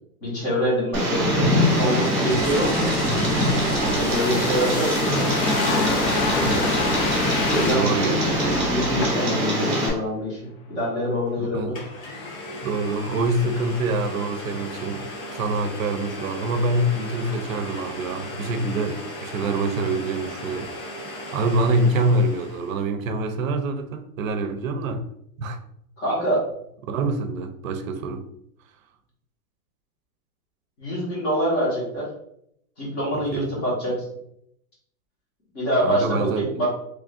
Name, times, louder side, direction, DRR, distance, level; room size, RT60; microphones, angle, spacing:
voice 1, 0.2-2.9 3.9-5.3 7.5-7.9 8.2-10.4 10.7-11.8 26.0-26.4 30.8-32.1 32.8-34.0 35.5-36.7, equal, 25° left, 1.3 m, -25 dB
Tick, 0.9-9.9, equal, 20° right, 0.8 m, -23 dB
sound 1, 1.1-9.5 9.8-10.0, left 3 dB, 45° left, 0.6 m, -28 dB
voice 2, 7.7-8.7 11.4-11.8 12.6-15.1 15.3-20.7 21.3-25.0 25.4-25.6 26.8-28.3 33.1-33.5 35.8-36.7, right 2 dB, 65° right, 0.6 m, -25 dB
Domestic sounds home sounds, 11.3-11.4 11.7-22.8, equal, 65° left, 1.2 m, -36 dB
3.5 x 3.2 x 2.4 m
supercardioid pair, 180°, 44 cm